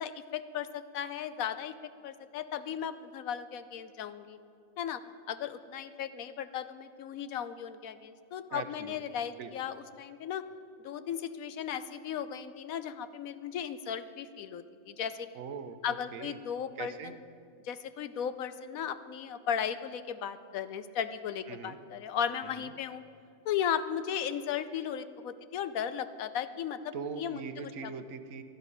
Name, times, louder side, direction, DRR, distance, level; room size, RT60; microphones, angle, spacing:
voice 1, 0.0-4.4 4.8-5.0 5.3-10.4 10.8-15.3 15.8-17.2 17.6-23.0 23.4-27.4 27.8-27.9, left 8 dB, 80° left, 12 dB, 1.2 m, -36 dB
voice 2, 8.5-9.0 9.4-9.5 15.3-16.4 16.8-17.1 21.5-21.8 22.4-22.7 26.9-28.4, right 6 dB, 75° right, 10 dB, 1.3 m, -41 dB
12.0 x 11.5 x 9.8 m, 2.4 s
omnidirectional pair, 1.4 m